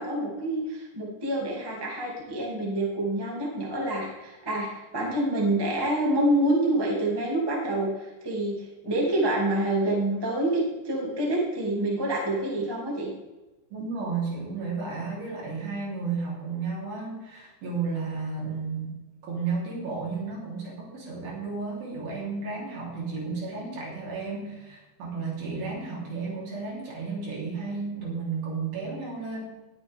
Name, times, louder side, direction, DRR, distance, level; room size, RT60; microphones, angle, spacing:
voice 1, 0.0-13.1, right 1 dB, 10° right, -3 dB, 1.5 m, -27 dB
voice 2, 13.7-29.4, right 4 dB, 55° right, -5 dB, 5.4 m, -33 dB
19.5 x 7.8 x 3.6 m, 1.1 s
omnidirectional pair, 5.1 m